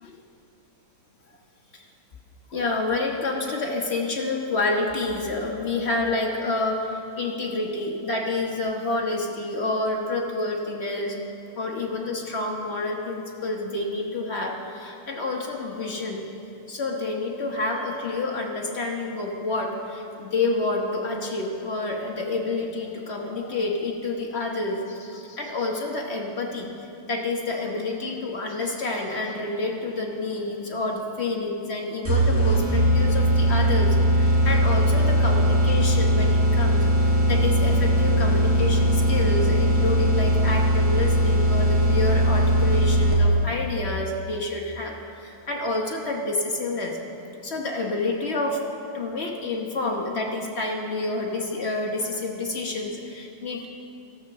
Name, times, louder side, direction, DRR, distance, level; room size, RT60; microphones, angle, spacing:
voice 1, 2.5-11.2 11.6-16.2 16.7-48.6 48.9-53.7, left 2 dB, 45° left, 0 dB, 0.9 m, -28 dB
sound 1, 32.1-43.4, equal, 5° right, 1.3 m, -20 dB
13.5 x 7.1 x 6.6 m, 2.7 s
omnidirectional pair, 2.4 m